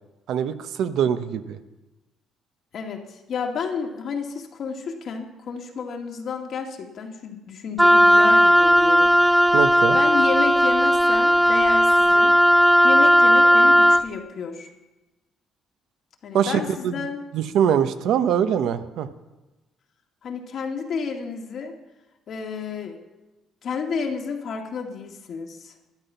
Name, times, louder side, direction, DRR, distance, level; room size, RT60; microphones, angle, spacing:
voice 1, 0.3-1.6 9.5-10.0 16.3-17.1 17.3-19.1, right 8 dB, 75° right, 10 dB, 0.8 m, -23 dB
voice 2, 2.7-9.1 9.9-12.4 12.8-14.7 16.2-17.2 20.2-21.7 22.3-23.0 23.6-25.7, left 5 dB, 60° left, 2 dB, 2.0 m, -31 dB
Wind instrument woodwind instrument, 7.8-14.1, equal, 5° right, 0.4 m, -16 dB
12.0 x 10.0 x 5.6 m, 1.1 s
cardioid pair, 80°, 0 cm